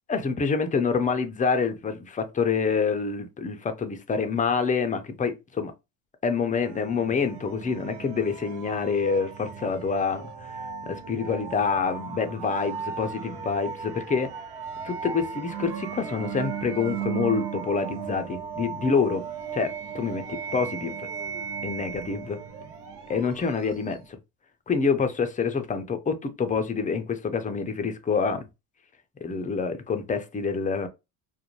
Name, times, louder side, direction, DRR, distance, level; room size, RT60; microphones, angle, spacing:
voice 1, 0.1-5.7 6.2-14.4 14.8-19.2 19.5-21.1 21.6-22.4 23.1-24.2 24.7-28.5 29.2-30.9, left 5 dB, 20° left, 0.5 m, -27 dB
sound 1, 6.6-24.1, right 7 dB, 70° right, 0.8 m, -36 dB
2.5 x 2.2 x 2.9 m
supercardioid pair, 80°, 42 cm